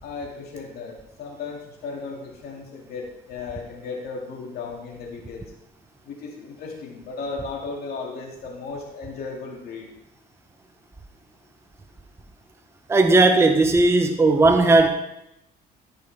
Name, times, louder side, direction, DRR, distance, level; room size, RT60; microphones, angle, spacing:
voice 1, 0.0-5.4 6.0-9.9, left 4 dB, 65° left, -1 dB, 2.4 m, -35 dB
voice 2, 12.9-14.9, right 2 dB, 15° right, 6 dB, 0.7 m, -16 dB
13.5 x 5.4 x 3.5 m, 0.85 s
cardioid pair, 110°, 17 cm